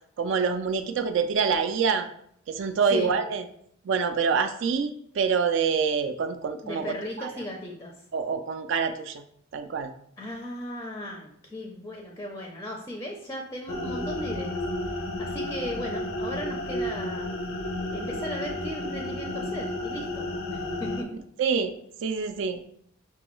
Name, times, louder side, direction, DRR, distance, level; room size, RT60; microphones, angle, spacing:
voice 1, 0.2-2.1 2.5-3.4 3.9-7.3 8.1-9.2 9.5-9.9 21.4-21.7 22.0-22.6, right 5 dB, 60° right, 8 dB, 0.3 m, -26 dB
voice 2, 6.6-7.9 10.2-14.6 14.9-17.3 17.9-21.1, equal, 15° left, 0 dB, 0.4 m, -36 dB
sound 1, 13.7-21.0, left 1 dB, 80° left, 0.5 m, -32 dB
5.9 x 2.3 x 3.0 m, 0.68 s
head